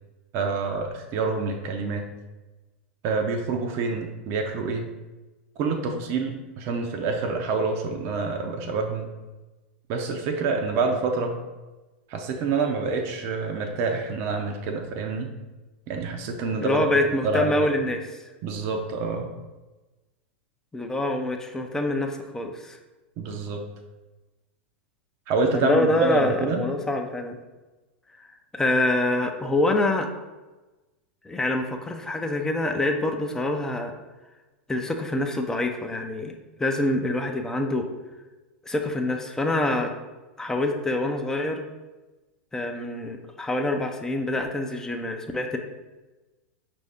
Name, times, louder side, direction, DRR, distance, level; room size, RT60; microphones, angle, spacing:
voice 1, 0.3-2.0 3.0-4.9 5.6-9.1 9.9-11.3 12.1-15.3 15.9-16.9 17.2-17.7 18.4-19.3 23.2-23.6 25.3-26.6, right 4 dB, 45° right, 3 dB, 0.6 m, -27 dB
voice 2, 16.6-18.2 20.7-22.8 25.5-27.4 28.5-30.1 31.2-33.9 34.7-37.9 38.7-39.9 40.4-41.6 42.5-45.6, left 1 dB, 10° left, 4 dB, 0.5 m, -25 dB
5.3 x 2.6 x 3.5 m, 1.2 s
hypercardioid pair, 100°, 6 cm